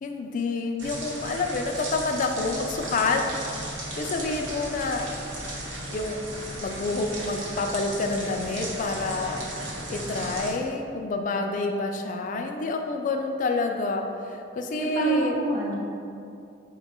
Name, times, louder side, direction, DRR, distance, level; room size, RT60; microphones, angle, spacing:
voice 1, 0.0-3.2 4.0-5.1 5.9-6.2 6.5-9.4 9.9-15.4, left 3 dB, 40° left, 4 dB, 0.3 m, -28 dB
sound 1, 0.8-10.5, right 1 dB, 85° right, 0.9 m, -35 dB
voice 2, 14.7-15.8, right 3 dB, 45° right, -4 dB, 0.8 m, -26 dB
4.8 x 2.2 x 4.2 m, 2.6 s
head